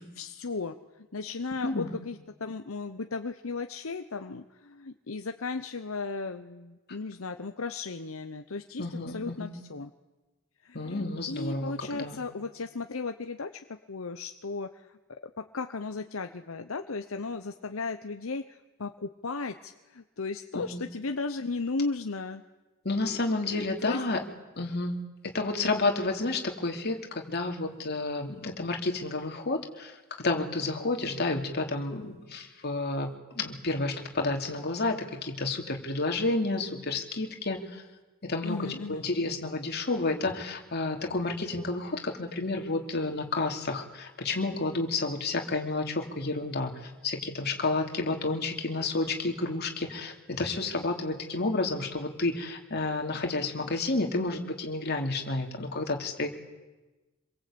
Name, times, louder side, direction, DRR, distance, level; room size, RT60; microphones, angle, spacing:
voice 1, 0.2-0.8 1.1-9.9 10.6-22.4 23.5-24.0 38.4-39.1, left 3 dB, 75° left, 7 dB, 1.0 m, -36 dB
voice 2, 1.6-1.9 8.8-9.5 10.7-12.2 20.5-20.8 22.8-24.2 24.6-24.9 25.2-37.8 38.2-56.3, left 2 dB, 50° left, 3 dB, 2.9 m, -30 dB
26.0 x 22.5 x 8.7 m, 1.2 s
head